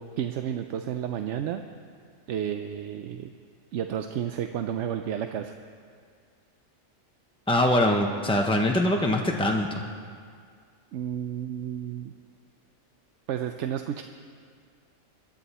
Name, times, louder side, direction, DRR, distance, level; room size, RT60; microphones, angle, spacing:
voice 1, 0.0-1.6 2.3-3.3 3.7-5.5 10.9-12.1 13.3-14.0, right 9 dB, 70° right, 7 dB, 0.8 m, -31 dB
voice 2, 7.5-9.8, left 1 dB, 5° left, 1 dB, 0.4 m, -23 dB
22.0 x 12.0 x 4.2 m, 2.1 s
omnidirectional pair, 1.4 m